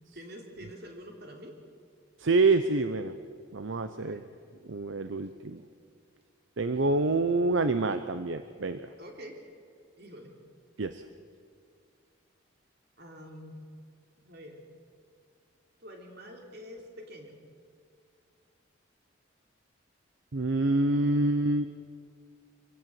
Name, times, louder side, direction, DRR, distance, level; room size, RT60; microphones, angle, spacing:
voice 1, 0.1-1.6 4.0-4.3 9.0-9.4 10.0-10.3 13.0-13.6 14.2-14.6 15.8-17.3, equal, 50° right, 2 dB, 3.4 m, -46 dB
voice 2, 2.2-3.1 3.5-4.2 4.7-5.6 6.6-8.8 10.8-11.0 20.3-21.7, right 3 dB, 70° right, 10 dB, 0.7 m, -26 dB
25.5 x 16.5 x 7.7 m, 2.2 s
head